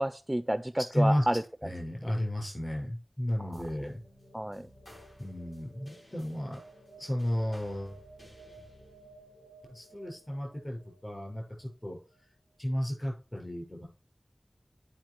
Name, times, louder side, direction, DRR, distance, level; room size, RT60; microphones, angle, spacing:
voice 1, 0.0-1.7 3.4-3.6 4.3-4.7, right 1 dB, 15° right, 10 dB, 0.5 m, -31 dB
voice 2, 0.9-1.2 1.6-4.0 5.2-6.6 7.0-8.0 9.7-12.0 12.6-13.9, equal, 35° left, 0 dB, 6.4 m, -33 dB
sound 1, 3.5-12.2, right 1 dB, 60° left, 6.4 m, -54 dB
10.5 x 5.6 x 4.9 m, 0.34 s
wide cardioid pair, 55°, 0 cm